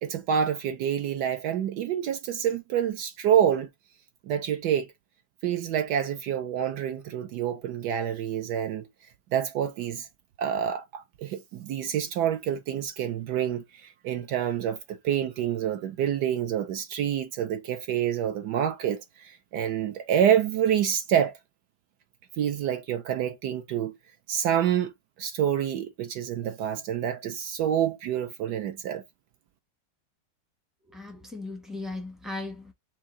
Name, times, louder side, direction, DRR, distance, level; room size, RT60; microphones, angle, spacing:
voice 1, 0.0-3.7 4.2-4.9 5.4-8.9 9.3-10.1 10.4-21.4 22.4-23.9 24.3-24.9 25.2-29.0, right 9 dB, 70° right, 1.0 m, -27 dB
voice 2, 30.9-32.7, left 2 dB, ahead, 0.5 m, -37 dB
4.7 x 2.7 x 3.7 m
omnidirectional pair, 2.1 m